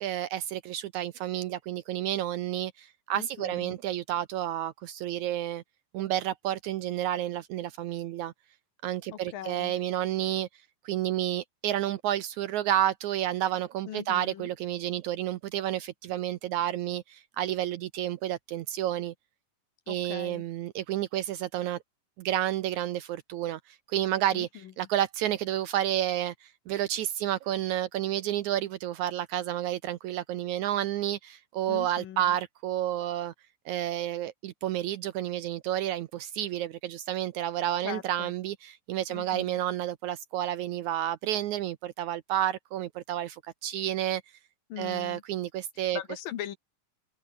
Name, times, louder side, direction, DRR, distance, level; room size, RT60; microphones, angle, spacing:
voice 1, 0.0-5.6 5.9-8.3 8.8-10.5 10.9-19.1 19.9-21.8 22.2-33.3 33.7-44.2 44.8-46.0, right 12 dB, 75° right, 1.9 m, -30 dB
voice 2, 3.1-3.8 9.1-9.7 13.9-14.5 19.9-20.4 24.3-24.7 31.7-32.2 37.8-38.3 39.1-39.5 44.7-45.2 45.9-46.6, left 11 dB, 75° left, 3.3 m, -40 dB
omnidirectional pair, 4.0 m